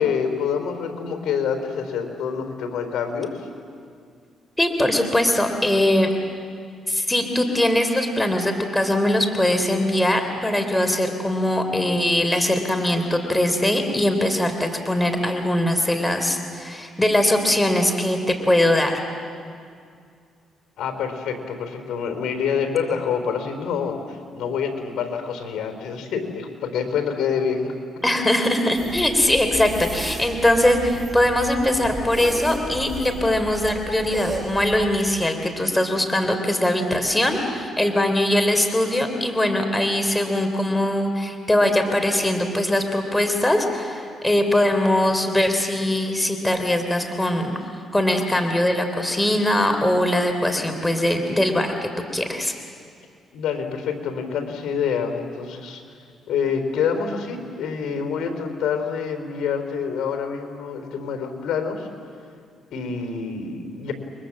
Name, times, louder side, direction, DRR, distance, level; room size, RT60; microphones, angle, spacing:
voice 1, 0.0-3.5 20.8-27.7 53.3-55.8 56.3-61.9 62.7-63.9, left 6 dB, 75° left, 6 dB, 4.3 m, -26 dB
voice 2, 4.6-6.1 6.9-19.0 28.0-47.6 47.9-52.5, left 1 dB, 10° left, 5 dB, 3.4 m, -21 dB
sound 1, 28.7-34.8, right 1 dB, 15° right, 7.1 m, -34 dB
30.0 x 23.5 x 7.6 m, 2.2 s
cardioid pair, 90°, 0 cm